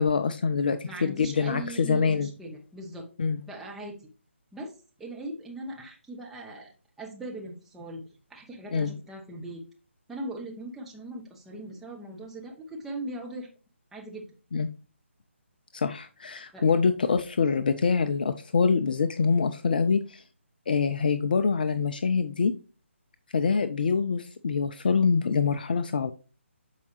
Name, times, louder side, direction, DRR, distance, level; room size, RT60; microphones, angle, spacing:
voice 1, 0.0-2.3 3.2-3.4 8.7-8.9 14.5-14.7 15.7-20.2 20.7-22.5 23.3-26.1, left 5 dB, 40° left, 9 dB, 0.4 m, -25 dB
voice 2, 0.9-3.0 3.5-4.0 4.5-4.7 5.0-6.7 7.0-8.0 8.3-9.6 10.1-13.5 13.9-14.3 16.5-16.7, right 1 dB, 5° right, -3 dB, 0.7 m, -39 dB
7.0 x 4.6 x 3.1 m, 0.35 s
figure-of-eight pair, 145°, 7 cm